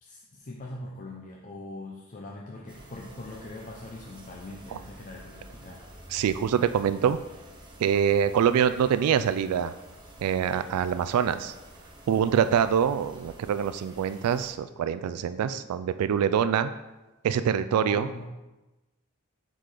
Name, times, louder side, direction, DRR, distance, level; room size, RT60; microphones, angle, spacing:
voice 1, 0.0-5.8 17.7-18.2, left 2 dB, 35° left, -2 dB, 0.6 m, -42 dB
sound 1, 2.7-14.5, right 1 dB, 20° right, 0.8 m, -49 dB
voice 2, 6.1-7.2 7.8-9.7 10.2-11.5 12.1-16.7 17.2-18.1, right 8 dB, 90° right, 15 dB, 0.3 m, -25 dB
6.6 x 3.9 x 4.8 m, 1.1 s
head